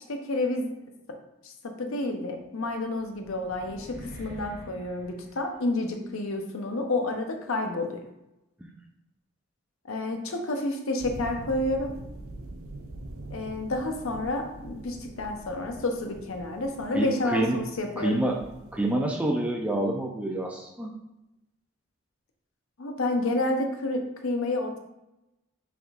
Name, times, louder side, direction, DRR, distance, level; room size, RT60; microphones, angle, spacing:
voice 1, 0.1-0.7 1.4-1.5 1.8-8.0 9.8-11.9 13.3-18.3 22.8-24.8, left 2 dB, 75° left, 4 dB, 0.7 m, -30 dB
sound 1, 2.6-6.0, equal, 45° right, 1.0 m, -46 dB
sound 2, 11.0-18.9, right 1 dB, 80° right, 0.6 m, -43 dB
voice 2, 16.9-17.6 18.0-18.4 18.7-20.9, right 1 dB, 5° right, 0 dB, 0.4 m, -27 dB
6.0 x 3.5 x 2.4 m, 0.91 s
head